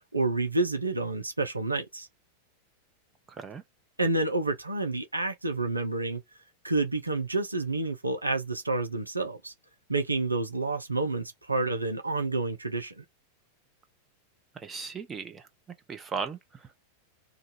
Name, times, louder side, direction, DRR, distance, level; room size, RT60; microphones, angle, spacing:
voice 1, 0.1-2.1 4.0-6.2 6.6-9.5 9.9-13.0, right 2 dB, 80° right, 0.6 m, -29 dB
voice 2, 3.3-3.6 14.5-15.5 15.9-16.8, right 5 dB, 20° right, 0.7 m, -37 dB
2.6 x 2.4 x 4.1 m
figure-of-eight pair, 90°, 0 cm